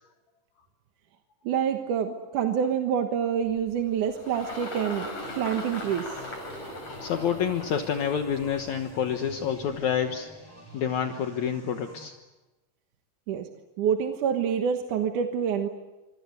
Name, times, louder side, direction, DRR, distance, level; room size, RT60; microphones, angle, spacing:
voice 1, 1.5-5.1 5.4-6.1 13.3-13.5 13.8-15.7, right 8 dB, 70° right, 5 dB, 2.8 m, -27 dB
Engine, 3.4-10.0, left 1 dB, 45° left, 7.2 m, -40 dB
sound 1, 5.2-12.0, left 1 dB, 5° left, 7.8 m, -49 dB
voice 2, 7.0-10.3 10.7-12.1, left 8 dB, 65° left, 5 dB, 2.5 m, -28 dB
26.5 x 25.0 x 8.2 m, 1.1 s
omnidirectional pair, 3.8 m